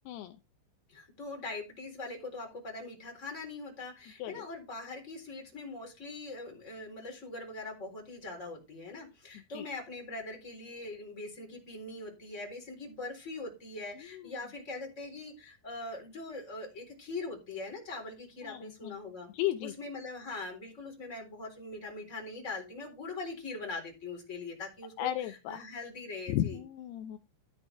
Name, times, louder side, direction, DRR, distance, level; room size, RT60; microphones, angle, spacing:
voice 1, 0.9-19.3 19.6-26.6, left 3 dB, 15° left, 2 dB, 3.6 m, -42 dB
voice 2, 18.4-18.9 19.3-19.7 25.0-25.6 26.3-27.2, left 13 dB, 85° left, 9 dB, 2.3 m, -34 dB
13.0 x 8.8 x 3.4 m, 0.27 s
omnidirectional pair, 5.6 m